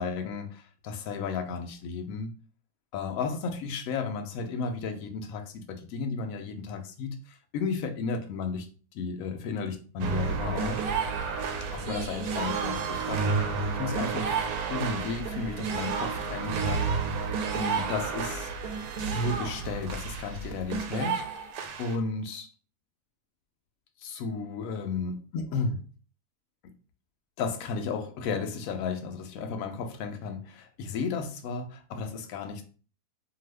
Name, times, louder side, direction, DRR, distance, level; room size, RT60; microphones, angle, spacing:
voice 1, 0.0-2.3 2.9-8.7 8.9-10.8 11.7-13.5 13.7-18.5 19.1-21.3 21.8-22.5 24.0-25.9 26.6-26.7 27.4-32.6, left 4 dB, 70° left, 0.9 m, -34 dB
sound 1, 10.0-21.9, right 5 dB, 75° right, 1.0 m, -31 dB
2.7 x 2.3 x 3.2 m
omnidirectional pair, 1.7 m